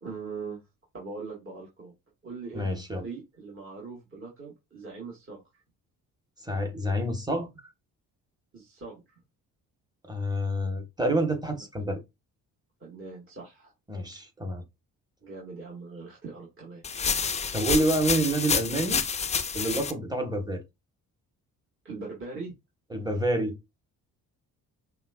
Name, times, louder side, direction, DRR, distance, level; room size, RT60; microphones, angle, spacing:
voice 1, 0.0-0.6 0.9-1.9 2.2-5.4 8.5-9.0 12.8-13.7 15.2-16.9 21.8-22.5, right 4 dB, 25° right, 1.7 m, -41 dB
voice 2, 2.5-3.1 6.4-7.5 10.1-12.0 13.9-14.6 17.5-19.0 19.5-20.6 22.9-23.6, right 1 dB, 10° right, 1.3 m, -28 dB
sound 1, 16.8-19.9, left 6 dB, 15° left, 0.4 m, -28 dB
5.6 x 2.4 x 2.4 m
figure-of-eight pair, 45°, 47 cm